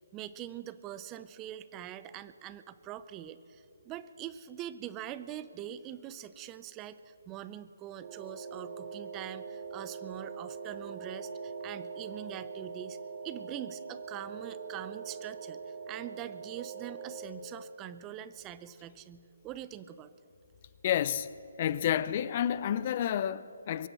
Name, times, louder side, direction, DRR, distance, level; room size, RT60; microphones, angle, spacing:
voice 1, 0.0-13.0 13.2-20.1, right 11 dB, 20° right, 0.5 m, -43 dB
sound 1, 8.0-17.3, right 5 dB, 50° right, 2.1 m, -42 dB
voice 2, 20.8-21.3 21.6-23.9, left 10 dB, 35° left, 0.4 m, -30 dB
23.0 x 8.0 x 7.5 m
figure-of-eight pair, 150°, 0 cm